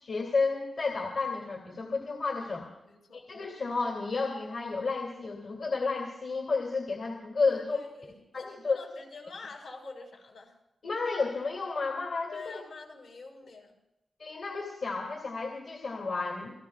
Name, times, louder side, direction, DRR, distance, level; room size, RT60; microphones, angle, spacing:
voice 1, 0.0-2.7 3.1-7.8 8.3-8.8 10.8-12.6 14.2-16.5, left 4 dB, 60° left, 0 dB, 2.6 m, -31 dB
voice 2, 2.8-3.2 7.5-10.6 12.3-13.8, left 4 dB, 80° left, 0 dB, 5.7 m, -46 dB
28.5 x 18.5 x 2.5 m, 0.89 s
wide cardioid pair, 155°, 0 cm